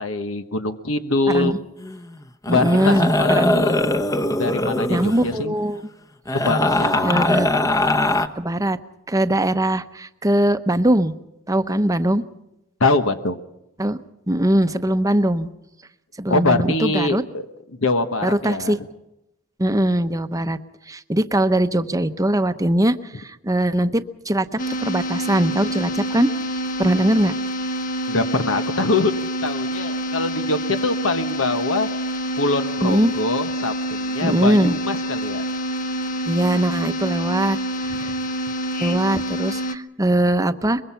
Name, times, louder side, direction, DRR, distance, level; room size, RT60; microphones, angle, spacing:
voice 1, 0.0-1.5 2.5-3.8 4.4-5.5 6.3-7.2 12.8-13.4 16.3-18.8 28.1-29.1 29.4-31.9 32.4-35.4, left 2 dB, 85° left, 9 dB, 1.3 m, -23 dB
voice 2, 1.3-1.6 2.5-3.6 4.9-5.8 7.0-7.7 8.4-8.8 9.1-11.1 11.5-12.2 13.8-14.0 14.3-15.5 16.2-17.2 18.2-18.8 19.6-20.6 20.9-26.3 26.8-27.3 32.8-33.1 34.2-34.8 36.3-38.1 38.8-40.8, right 1 dB, 15° right, 11 dB, 0.8 m, -21 dB
sound 1, 1.8-2.0 2.4-5.4 6.3-8.3, left 1 dB, 15° left, 0.9 m, -21 dB
sound 2, 24.6-39.8, right 1 dB, 40° left, 1.0 m, -27 dB
24.0 x 22.0 x 5.7 m, 0.90 s
head